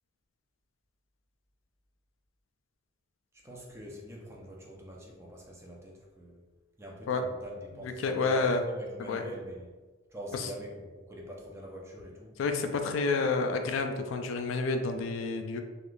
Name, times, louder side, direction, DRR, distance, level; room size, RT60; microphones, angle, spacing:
voice 1, 3.4-6.4 6.8-9.7 10.1-12.4, equal, 15° right, -2 dB, 0.5 m, -45 dB
voice 2, 7.8-8.6 9.1-9.2 10.3-10.5 12.4-15.6, left 4 dB, 80° left, 6 dB, 0.3 m, -29 dB
3.4 x 2.4 x 2.5 m, 1.3 s
head